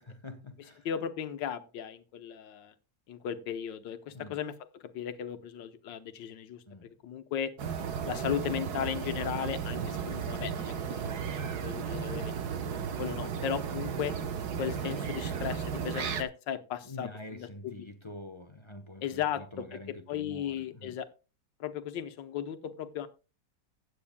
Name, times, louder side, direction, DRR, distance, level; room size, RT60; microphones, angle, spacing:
voice 1, 0.0-0.9 4.1-4.4 6.7-7.0 9.6-9.9 13.1-13.8 16.8-21.0, left 1 dB, 25° left, 0.6 m, -47 dB
voice 2, 0.8-2.7 3.1-7.5 8.0-14.1 14.6-17.9 19.0-19.8 20.1-21.1 21.6-23.1, left 9 dB, 80° left, 1.6 m, -36 dB
sound 1, 7.6-16.2, right 7 dB, 60° right, 1.5 m, -34 dB
15.5 x 9.6 x 2.2 m
omnidirectional pair, 2.0 m